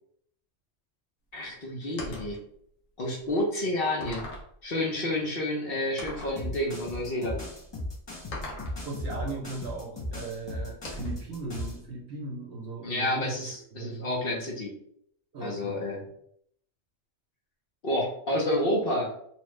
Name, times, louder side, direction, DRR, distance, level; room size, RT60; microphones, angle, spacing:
voice 1, 1.3-2.4 3.0-4.2 4.6-7.4 12.8-14.7 15.4-16.0 17.8-19.1, left 1 dB, 50° left, -2 dB, 0.9 m, -29 dB
sound 1, 2.0-2.4 3.2-3.3 4.0-4.5 6.0-6.4 8.3-8.8 10.8-11.2, left 1 dB, 80° left, 1.2 m, -39 dB
sound 2, 6.4-11.8, left 1 dB, 30° left, 0.5 m, -36 dB
voice 2, 8.8-13.3 13.7-14.1 15.3-15.9, right 3 dB, 55° right, -1 dB, 0.8 m, -38 dB
3.0 x 2.4 x 3.1 m, 0.67 s
omnidirectional pair, 1.3 m